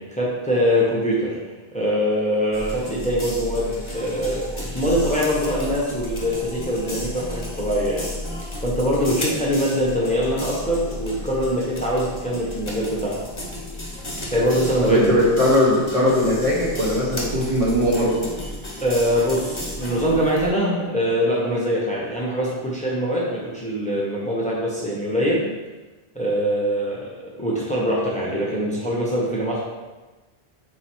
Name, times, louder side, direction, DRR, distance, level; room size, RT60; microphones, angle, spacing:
voice 1, 0.1-1.4 1.7-8.1 8.6-13.2 14.3-15.2 18.8-25.5 26.1-29.6, equal, 5° left, -5 dB, 1.1 m, -23 dB
sound 1, 2.5-20.5, left 1 dB, 30° left, 1.1 m, -33 dB
voice 2, 14.8-18.3, left 1 dB, 35° right, -6 dB, 1.2 m, -19 dB
7.7 x 2.8 x 4.6 m, 1.2 s
omnidirectional pair, 1.0 m